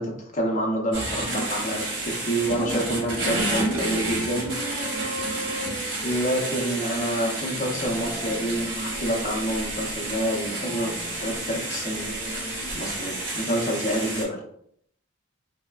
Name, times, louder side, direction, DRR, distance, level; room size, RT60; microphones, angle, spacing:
voice 1, 0.0-4.5 6.0-12.1 12.7-14.4, right 1 dB, 40° left, 0 dB, 0.5 m, -28 dB
sound 1, 0.9-14.2, right 2 dB, 65° right, 0.9 m, -30 dB
Wind instrument woodwind instrument, 2.0-8.4, right 3 dB, ahead, 1.2 m, -39 dB
sound 2, 7.6-13.3, right 1 dB, 80° right, 0.5 m, -40 dB
3.1 x 2.0 x 2.2 m, 0.68 s
head